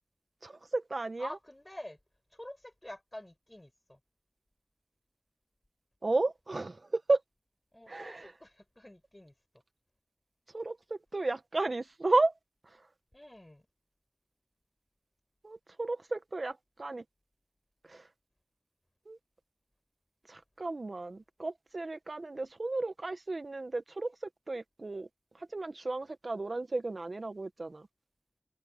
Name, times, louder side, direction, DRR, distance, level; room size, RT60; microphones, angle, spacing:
voice 1, 0.4-1.3 6.0-7.2 7.9-8.3 10.5-12.3 12.7-12.8 15.4-17.0 17.8-18.1 19.1-19.2 20.3-25.1 25.3-27.9, right 2 dB, 75° right, 0.6 m, -33 dB
voice 2, 1.2-2.0 2.3-4.0 7.7-9.4 13.1-13.7, left 1 dB, 25° left, 6.9 m, -47 dB
wide cardioid pair, 45°, 0 cm